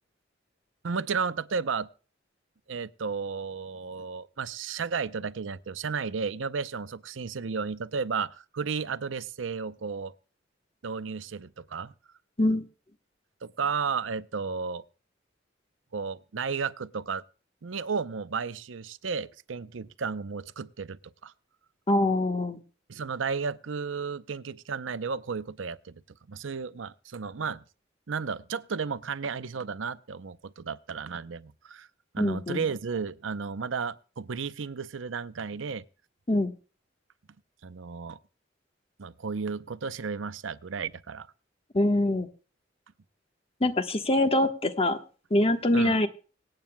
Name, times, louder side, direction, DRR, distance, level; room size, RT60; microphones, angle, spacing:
voice 1, 0.8-1.9 2.7-10.1 10.8-11.9 13.4-14.8 15.9-17.2 17.6-21.3 22.9-26.0 26.3-27.6 28.1-31.9 32.1-35.8 37.6-38.2 39.0-41.3 45.7-45.9, right 5 dB, 85° right, 0.6 m, -33 dB
voice 2, 21.9-22.6 32.2-32.6 36.3-36.5 41.7-42.3 43.6-45.0 45.3-46.1, left 1 dB, 30° left, 1.2 m, -24 dB
25.5 x 8.9 x 2.2 m
head